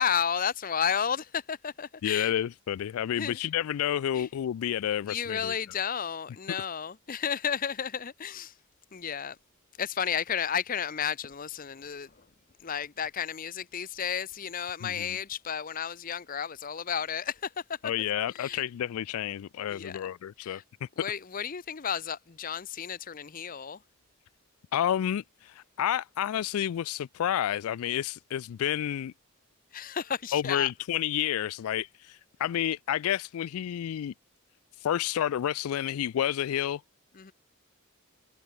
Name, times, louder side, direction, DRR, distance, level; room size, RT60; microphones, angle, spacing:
voice 1, 0.0-2.3 3.2-3.4 4.2-4.3 5.1-8.5 8.9-9.4 9.8-12.3 12.6-17.8 18.3-18.6 19.7-20.0 20.4-20.6 21.0-23.8 29.7-30.7 37.1-37.3, left 7 dB, 40° left, 0.6 m, -32 dB
voice 2, 2.0-5.5 14.8-15.2 17.8-21.1 24.7-29.1 30.3-34.1 34.8-36.8, left 10 dB, 80° left, 0.3 m, -30 dB
head